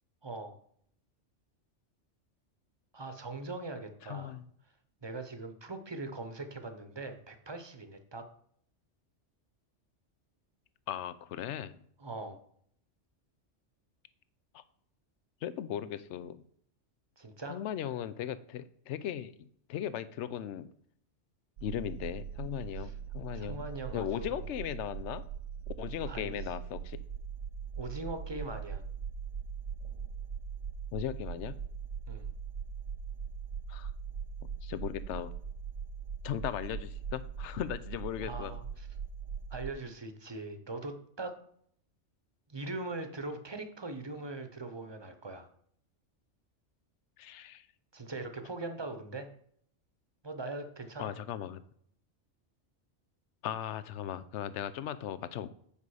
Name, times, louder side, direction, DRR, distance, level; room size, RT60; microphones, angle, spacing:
voice 1, 0.2-0.6 2.9-4.4 5.0-8.3 12.0-12.4 17.2-17.6 22.8-22.9 23.3-24.5 26.1-26.4 27.8-28.8 32.1-32.3 38.2-38.9 39.5-41.4 42.5-45.5 47.9-49.3 50.2-51.2, right 2 dB, 25° right, 8 dB, 0.8 m, -41 dB
voice 2, 4.0-4.5 10.9-11.8 14.5-14.6 15.4-16.4 17.5-20.7 21.6-23.7 23.9-25.2 25.8-27.0 30.9-31.6 33.7-33.9 34.6-35.4 36.2-38.5 47.2-47.7 51.0-51.6 53.4-55.5, left 10 dB, 75° left, 14 dB, 0.9 m, -37 dB
sound 1, 21.6-39.7, right 7 dB, 75° right, 0.9 m, -41 dB
8.6 x 5.3 x 4.8 m, 0.65 s
omnidirectional pair, 1.2 m